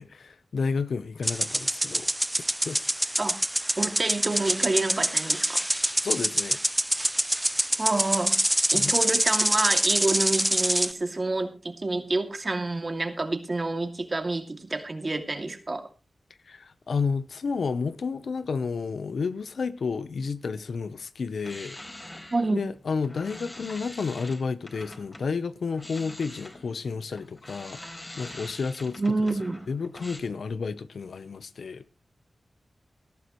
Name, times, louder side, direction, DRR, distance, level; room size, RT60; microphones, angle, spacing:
voice 1, 0.0-2.1 2.6-2.9 6.0-6.6 8.7-8.9 16.5-21.8 22.5-29.3 29.7-31.8, left 5 dB, 85° left, 0.8 m, -31 dB
sound 1, 1.2-10.9, right 1 dB, 10° right, 0.6 m, -25 dB
voice 2, 3.8-5.6 7.8-8.4 8.7-15.8 22.3-22.6 29.0-29.6, right 2 dB, 40° right, 2.5 m, -28 dB
sound 2, 21.3-25.3 25.7-30.2, left 1 dB, 20° left, 4.2 m, -44 dB
18.0 x 13.0 x 3.1 m
wide cardioid pair, 65°, 0 cm